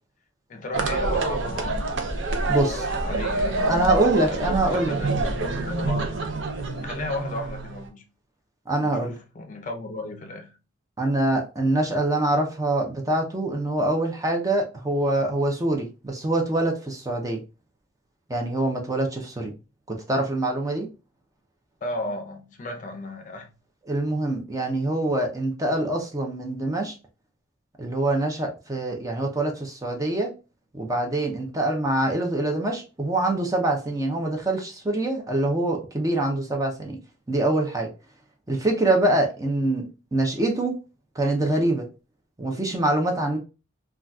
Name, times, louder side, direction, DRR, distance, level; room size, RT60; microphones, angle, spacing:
voice 1, 0.5-1.8 2.6-4.4 4.6-6.3 6.8-8.0 8.8-10.6 21.8-23.5, left 2 dB, 40° left, 0.5 m, -35 dB
sound 1, 0.7-7.9, right 3 dB, 65° right, 0.6 m, -26 dB
voice 2, 2.5-2.8 3.6-5.0 8.7-9.1 11.0-17.4 18.3-19.5 19.9-20.9 23.9-26.9 27.8-30.3 30.7-37.0 37.3-37.9 38.5-40.7 41.2-41.8 42.4-43.4, right 2 dB, 15° right, 0.5 m, -24 dB
3.9 x 2.3 x 2.2 m
head